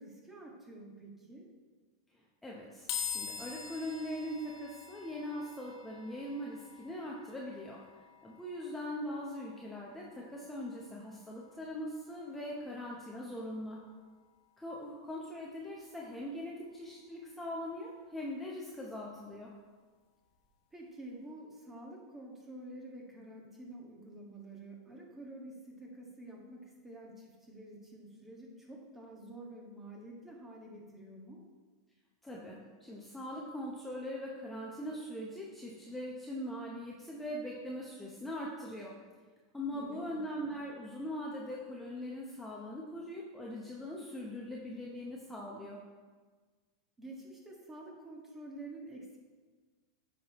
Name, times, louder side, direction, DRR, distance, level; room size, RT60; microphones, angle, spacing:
voice 1, 0.0-1.5 20.7-31.4 39.7-40.2 47.0-49.2, right 1 dB, 15° right, -1 dB, 1.8 m, -49 dB
voice 2, 2.4-7.8 8.2-13.8 14.6-19.5 32.2-38.9 39.5-45.8, left 1 dB, 5° left, -4 dB, 1.0 m, -41 dB
sound 1, 2.9-16.2, left 7 dB, 60° left, 1.3 m, -47 dB
9.1 x 5.9 x 3.1 m, 1.4 s
hypercardioid pair, 110°, 2 cm